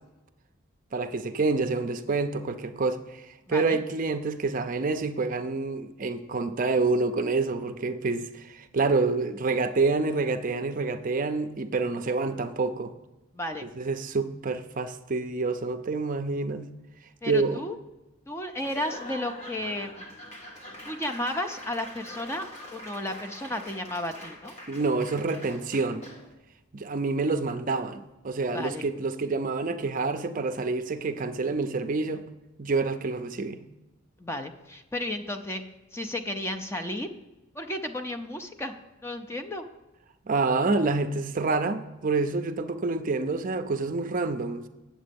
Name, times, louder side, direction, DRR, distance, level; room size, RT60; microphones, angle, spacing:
voice 1, 0.9-12.9 13.6-16.7 17.2-17.6 24.7-26.1 26.7-32.2 32.6-33.6 40.3-44.7, right 3 dB, 40° right, 0.5 m, -27 dB
voice 2, 3.5-3.8 13.3-13.6 17.2-17.8 18.3-20.1 20.8-22.5 22.7-24.5 28.5-28.8 34.2-35.6 35.9-37.1 37.6-38.7 39.0-39.6, left 1 dB, 10° left, 0.5 m, -33 dB
Laughter / Applause / Crowd, 18.6-26.3, left 1 dB, 35° left, 1.7 m, -44 dB
8.7 x 7.4 x 5.2 m
head